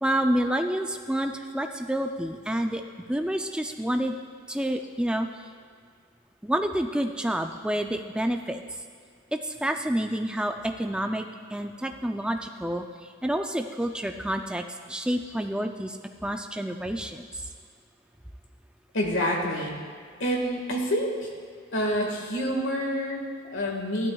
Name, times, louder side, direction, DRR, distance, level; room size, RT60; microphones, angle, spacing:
voice 1, 0.0-2.8 3.1-4.1 4.5-5.3 6.4-8.6 9.3-12.8 13.2-17.2, right 1 dB, 5° right, 5 dB, 0.4 m, -28 dB
voice 2, 18.9-19.8 20.2-21.3 21.7-24.1, equal, 60° left, 0 dB, 1.8 m, -27 dB
14.5 x 12.0 x 2.3 m, 2.1 s
head